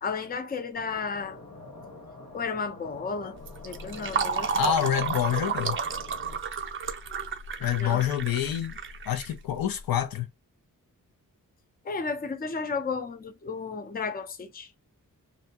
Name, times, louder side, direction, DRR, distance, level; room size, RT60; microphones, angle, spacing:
voice 1, 0.0-1.4 2.3-3.4 3.6-4.5 7.8-8.1 11.8-14.7, left 5 dB, 25° left, 0.4 m, -33 dB
sound 1, 0.7-6.4, left 2 dB, 50° left, 1.6 m, -46 dB
Fill (with liquid), 3.4-9.8, right 6 dB, 35° right, 0.5 m, -32 dB
voice 2, 4.4-5.8 7.6-8.7 9.1-10.3, left 10 dB, 80° left, 0.6 m, -27 dB
2.7 x 2.2 x 2.7 m
wide cardioid pair, 135°, 35 cm